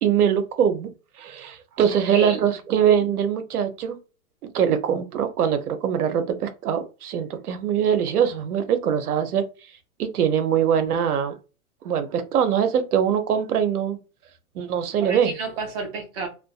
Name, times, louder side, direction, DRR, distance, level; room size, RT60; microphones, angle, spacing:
voice 1, 0.0-0.9 1.2-4.0 4.5-9.4 10.0-11.3 11.8-14.0 14.5-15.3, right 8 dB, 85° right, 0.7 m, -22 dB
voice 2, 1.8-2.6 15.0-16.3, right 4 dB, 30° right, 0.7 m, -31 dB
2.5 x 2.2 x 2.3 m
hypercardioid pair, 135°, 44 cm